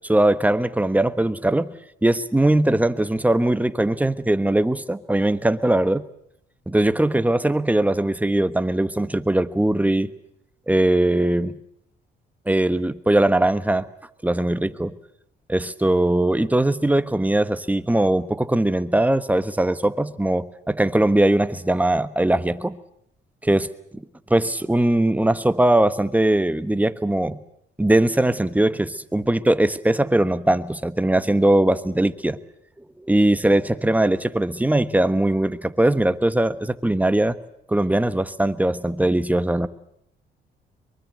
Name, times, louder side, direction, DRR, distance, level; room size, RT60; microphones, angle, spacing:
voice 1, 0.1-1.7 2.0-6.1 6.7-10.1 10.7-11.5 12.5-13.8 14.2-14.9 15.5-22.8 23.4-24.0 24.3-27.4 27.8-32.4 33.0-37.4 37.7-39.7, right 1 dB, 10° right, 11 dB, 1.3 m, -20 dB
23.5 x 23.5 x 7.8 m, 0.75 s
cardioid pair, 90°, 20 cm